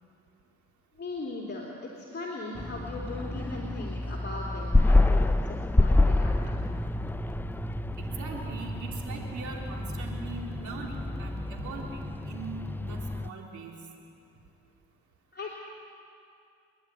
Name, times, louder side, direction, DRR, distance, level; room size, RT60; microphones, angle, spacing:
voice 1, 1.0-6.3 15.3-15.5, left 2 dB, 35° left, -3 dB, 3.2 m, -38 dB
sound 1, 2.6-13.3, left 2 dB, 5° left, 0.4 m, -28 dB
sound 2, 6.0-12.9, right 3 dB, 30° right, 2.6 m, -43 dB
voice 2, 8.0-13.7, right 4 dB, 70° right, 0 dB, 3.5 m, -41 dB
28.0 x 11.5 x 9.7 m, 2.6 s
cardioid pair, 90°, 30 cm